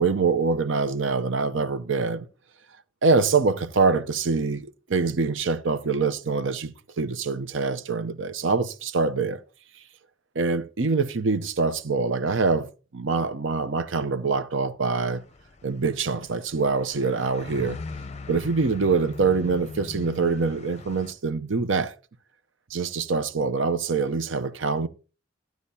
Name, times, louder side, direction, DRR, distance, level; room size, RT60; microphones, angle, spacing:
voice 1, 0.0-2.3 3.0-9.4 10.3-15.2 15.6-17.8 18.3-21.9 22.7-24.9, right 4 dB, 70° right, 0.7 m, -25 dB
sound 1, 15.0-21.1, left 3 dB, 35° left, 0.6 m, -41 dB
15.0 x 9.3 x 2.8 m
head